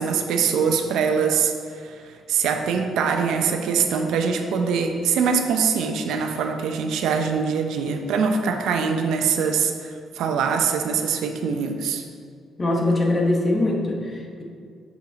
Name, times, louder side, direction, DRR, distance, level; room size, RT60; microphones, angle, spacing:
voice 1, 0.0-12.0, right 6 dB, 85° right, 5 dB, 0.6 m, -23 dB
voice 2, 12.6-14.4, left 2 dB, 30° left, 0 dB, 1.1 m, -22 dB
6.4 x 5.4 x 3.9 m, 2.1 s
cardioid pair, 90°, 0 cm